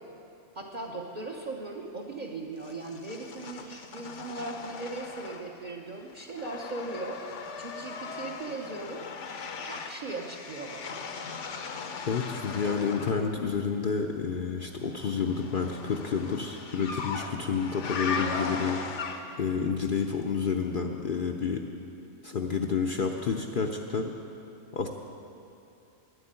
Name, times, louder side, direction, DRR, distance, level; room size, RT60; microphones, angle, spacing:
voice 1, 0.5-7.2 7.6-9.0 9.5-11.0, right 2 dB, 40° right, -1 dB, 0.9 m, -38 dB
sound 1, 2.6-5.7 6.0-13.3 14.8-19.5, left 4 dB, 70° left, 1.1 m, -38 dB
voice 2, 12.1-19.1 19.4-21.6 22.2-24.1 24.7-24.9, left 5 dB, 55° left, 2 dB, 0.7 m, -29 dB
10.5 x 8.1 x 8.8 m, 2.7 s
omnidirectional pair, 1.3 m